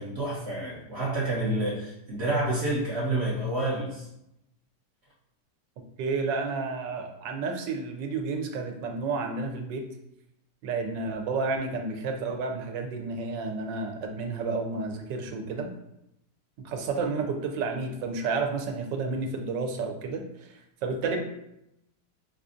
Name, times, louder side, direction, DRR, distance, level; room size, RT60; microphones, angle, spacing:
voice 1, 0.0-4.1, right 1 dB, 55° right, -6 dB, 0.8 m, -29 dB
voice 2, 6.0-9.8 10.6-15.7 16.6-21.2, right 4 dB, 80° right, 4 dB, 1.2 m, -31 dB
5.0 x 2.4 x 2.5 m, 0.82 s
omnidirectional pair, 1.9 m